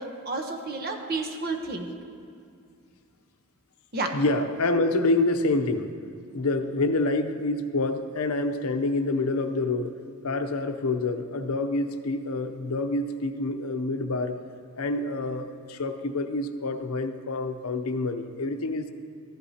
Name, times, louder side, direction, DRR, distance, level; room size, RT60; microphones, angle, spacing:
voice 1, 0.0-1.9 3.9-4.1, right 3 dB, 45° right, 4 dB, 0.9 m, -31 dB
voice 2, 4.1-5.9 6.3-10.0 10.2-14.4 14.8-18.9, left 2 dB, 75° left, 7 dB, 0.6 m, -27 dB
14.5 x 11.0 x 2.8 m, 2.4 s
head